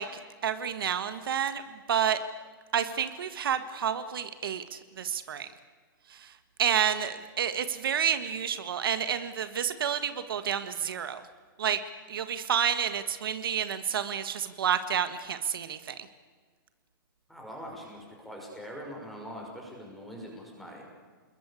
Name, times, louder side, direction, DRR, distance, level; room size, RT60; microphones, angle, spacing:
voice 1, 0.0-1.6 1.9-2.2 2.7-5.5 6.1-6.3 6.6-11.2 11.6-11.8 12.1-16.1, right 8 dB, 75° right, 10 dB, 1.6 m, -29 dB
voice 2, 17.3-20.8, equal, ahead, -1 dB, 5.8 m, -43 dB
28.0 x 21.5 x 8.5 m, 1.5 s
hypercardioid pair, 165°, 12 cm